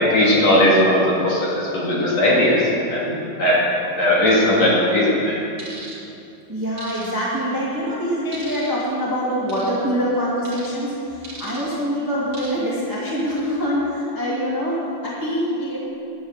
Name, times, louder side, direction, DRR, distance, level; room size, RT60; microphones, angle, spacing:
voice 1, 0.0-3.6 4.0-5.4, left 1 dB, 50° left, -5 dB, 2.5 m, -18 dB
sound 1, 5.6-6.0 6.8-7.4 8.3-8.8 9.5-9.8 10.4-10.7 11.2-11.7 12.3-12.7 13.2-13.4, right 2 dB, 30° right, 2.3 m, -38 dB
voice 2, 6.5-15.8, equal, 10° right, -7 dB, 1.1 m, -24 dB
10.5 x 9.3 x 7.4 m, 2.7 s
omnidirectional pair, 4.9 m